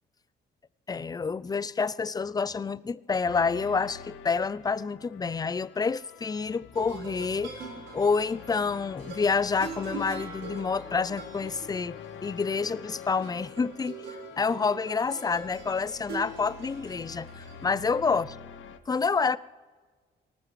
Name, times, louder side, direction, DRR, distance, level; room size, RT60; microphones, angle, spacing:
voice 1, 0.9-7.6 7.9-18.3 18.9-19.4, left 5 dB, 20° left, 0.4 m, -28 dB
sound 1, 3.3-18.8, left 8 dB, 80° left, 0.8 m, -47 dB
sound 2, 6.7-17.7, right 4 dB, 75° right, 4.1 m, -43 dB
19.0 x 19.0 x 3.2 m
cardioid pair, 90°, 20 cm